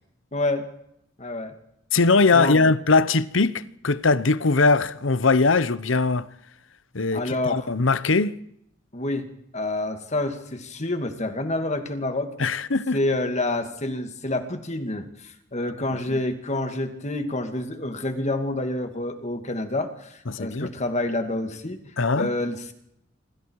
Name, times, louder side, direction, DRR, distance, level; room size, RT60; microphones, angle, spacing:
voice 1, 0.3-0.7 1.2-1.5 2.3-2.6 7.1-7.7 8.9-9.3 9.5-12.3 12.9-21.8 22.1-22.7, left 2 dB, 35° left, 2.5 m, -28 dB
voice 2, 1.9-6.3 6.9-8.3 12.4-13.0 16.1-16.2 20.3-20.7 22.0-22.3, left 3 dB, 80° left, 1.0 m, -21 dB
26.0 x 25.5 x 4.8 m
head